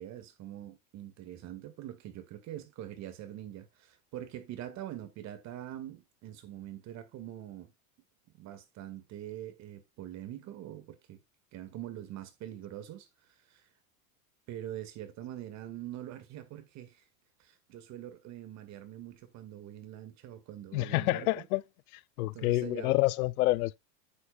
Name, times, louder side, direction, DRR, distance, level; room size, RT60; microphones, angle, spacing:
voice 1, 0.0-7.7 8.3-11.2 11.5-13.1 13.4-13.7 14.5-17.0 17.4-21.5 22.2-23.0, right 12 dB, 40° right, 1.9 m, -44 dB
voice 2, 20.7-21.6 21.9-23.8, left 19 dB, 85° left, 0.6 m, -28 dB
9.8 x 7.9 x 2.3 m
supercardioid pair, 135°, 42 cm